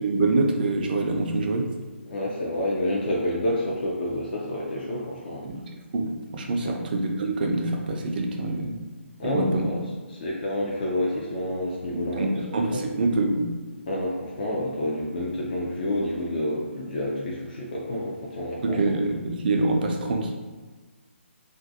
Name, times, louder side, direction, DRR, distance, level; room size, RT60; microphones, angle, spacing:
voice 1, 0.0-1.7 5.4-5.6 5.9-6.1 6.3-8.7 9.2-9.7 11.9-13.4 18.6-20.3, right 2 dB, 45° right, 2 dB, 0.4 m, -25 dB
voice 2, 2.1-5.5 6.6-6.9 9.2-9.8 10.1-12.4 12.7-12.8 13.9-18.8, left 1 dB, 45° left, -4 dB, 0.4 m, -29 dB
2.5 x 2.2 x 2.6 m, 1.3 s
figure-of-eight pair, 145°, 7 cm